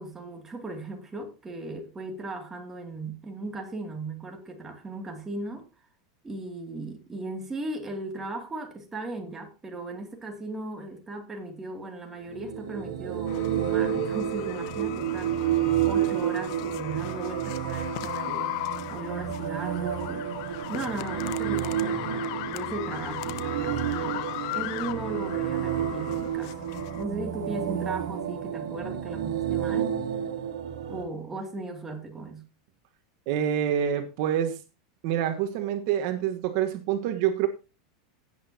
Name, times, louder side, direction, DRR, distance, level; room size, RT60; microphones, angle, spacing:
voice 1, 0.0-5.7 6.2-18.5 18.9-20.3 20.7-24.2 24.5-26.5 27.0-30.0 30.9-32.4, right 2 dB, 15° right, 2.5 m, -37 dB
sound 1, 12.2-31.0, right 10 dB, 90° right, 2.2 m, -30 dB
sound 2, 13.3-27.0, left 17 dB, 60° left, 0.9 m, -37 dB
voice 2, 33.3-34.6 35.0-37.5, right 10 dB, 60° right, 1.3 m, -26 dB
17.0 x 8.0 x 2.8 m
supercardioid pair, 135°, 3 cm